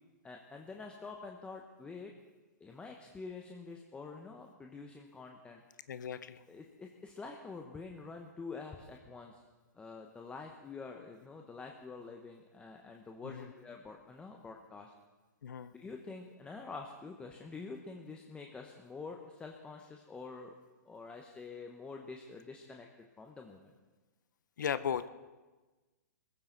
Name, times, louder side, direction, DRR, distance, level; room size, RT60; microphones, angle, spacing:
voice 1, 0.2-2.1 2.6-5.6 6.5-9.4 9.7-14.9 15.7-20.5 20.8-22.9 23.2-23.7, left 4 dB, 10° left, 2 dB, 1.1 m, -47 dB
voice 2, 5.9-6.4 13.2-13.5 15.4-15.7 24.6-25.1, left 8 dB, 80° left, 14 dB, 0.7 m, -36 dB
21.5 x 15.0 x 4.0 m, 1.2 s
hypercardioid pair, 135°, 10 cm